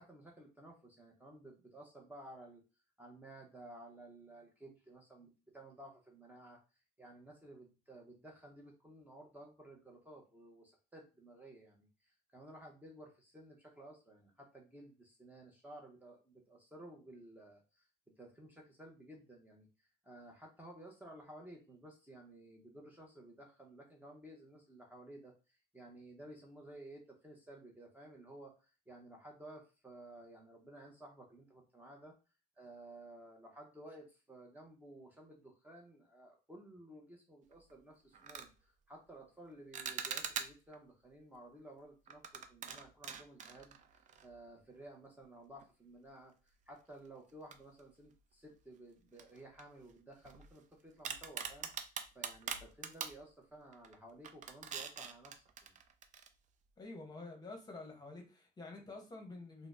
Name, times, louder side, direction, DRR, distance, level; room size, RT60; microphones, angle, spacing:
voice 1, 0.0-2.6 3.0-17.9 18.2-32.1 32.6-55.8, right 1 dB, 10° right, 0.7 m, -55 dB
sound 1, 37.5-37.7 38.1-38.5 39.7-40.8 42.1-44.5 44.7-44.9 45.6-45.7 47.5-48.2 48.5-48.6 49.2-50.6 51.0-53.2 53.7-53.9 54.2-56.3, right 7 dB, 45° right, 0.4 m, -44 dB
voice 2, 56.8-59.7, left 3 dB, 25° left, 0.8 m, -49 dB
4.0 x 2.0 x 2.4 m
cardioid pair, 110°, 17 cm